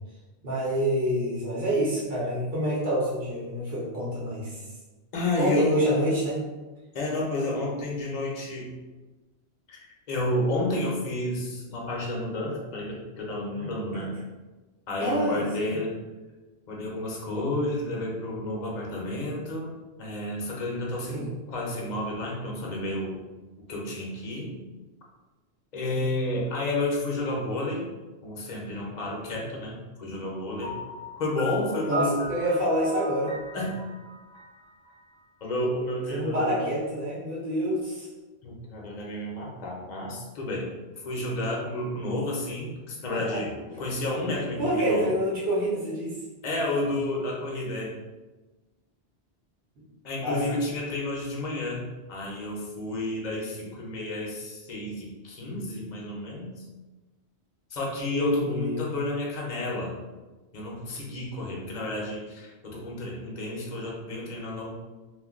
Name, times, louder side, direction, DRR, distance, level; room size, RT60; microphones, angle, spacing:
voice 1, 0.4-4.6 5.4-6.4 13.6-14.1 15.0-15.8 21.1-21.3 25.9-26.1 31.9-33.3 36.1-38.1 43.1-43.4 44.6-46.2 50.2-50.4 58.0-58.9, equal, 60° right, -7 dB, 1.0 m, -27 dB
voice 2, 5.1-5.9 6.9-8.8 9.7-9.8 10.1-14.1 14.9-15.9 16.7-23.2 23.6-24.6 25.7-27.9 28.2-30.7 31.2-32.3 33.5-33.7 35.4-36.7 38.4-40.7 41.0-45.1 46.4-47.9 50.0-56.6 57.7-59.9 60.5-64.7, left 1 dB, 45° left, -2 dB, 0.7 m, -31 dB
Piano, 30.6-35.5, right 1 dB, 5° left, 0.7 m, -38 dB
2.4 x 2.3 x 3.5 m, 1.2 s
omnidirectional pair, 1.1 m